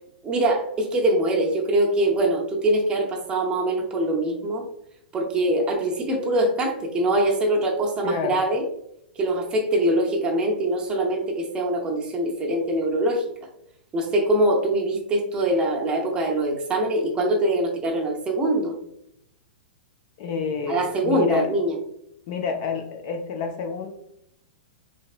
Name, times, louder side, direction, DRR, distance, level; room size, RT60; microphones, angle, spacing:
voice 1, 0.2-4.6 5.1-8.6 9.2-13.2 13.9-18.7 20.7-21.7, right 1 dB, 15° right, 1 dB, 0.5 m, -23 dB
voice 2, 8.0-8.4 20.2-21.5 22.3-23.9, left 5 dB, 40° left, 6 dB, 0.3 m, -28 dB
3.2 x 2.8 x 2.4 m, 0.76 s
hypercardioid pair, 155°, 6 cm